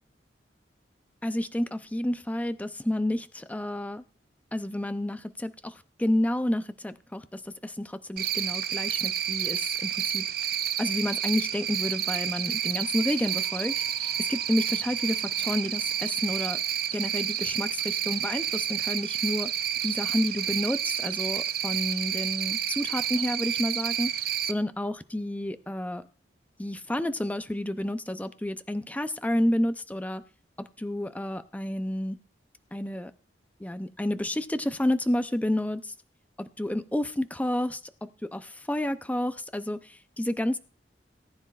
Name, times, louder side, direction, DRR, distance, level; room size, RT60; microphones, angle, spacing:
voice 1, 1.2-4.0 4.5-10.3 10.8-16.6 16.9-19.5 19.8-24.1 24.5-26.0 26.6-30.2 30.6-32.2 32.7-33.1 33.6-35.9 36.4-40.6, left 1 dB, 10° left, 11 dB, 0.5 m, -30 dB
Cricket, 8.2-24.5, right 10 dB, 55° right, 0.6 m, -30 dB
sound 1, 12.7-16.6, right 4 dB, 15° right, 6.6 m, -56 dB
19.0 x 9.7 x 2.4 m, 0.36 s
head